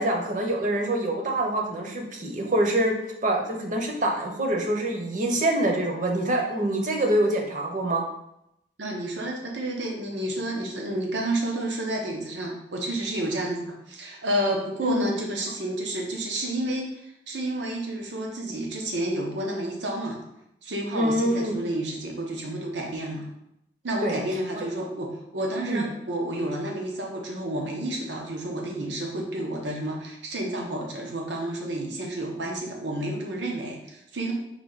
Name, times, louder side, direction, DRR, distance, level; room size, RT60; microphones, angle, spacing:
voice 1, 0.0-2.9 3.2-8.1 14.8-15.1 20.9-21.6 24.0-24.2 24.5-24.6 25.7-25.9, right 1 dB, 45° right, 2 dB, 0.8 m, -25 dB
voice 2, 8.8-20.2 20.6-23.3 23.8-34.3, right 1 dB, 90° right, 0 dB, 0.9 m, -30 dB
4.9 x 2.8 x 4.0 m, 0.82 s
head